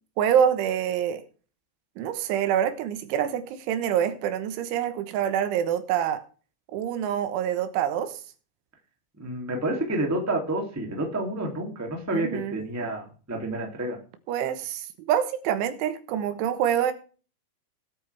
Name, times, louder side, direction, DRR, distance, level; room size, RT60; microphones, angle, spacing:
voice 1, 0.2-1.2 2.0-6.2 6.7-8.2 12.1-12.6 14.3-16.9, right 9 dB, 85° right, 3.7 m, -26 dB
voice 2, 9.2-14.0, right 1 dB, 5° right, 1.6 m, -29 dB
19.5 x 8.8 x 3.5 m
omnidirectional pair, 5.3 m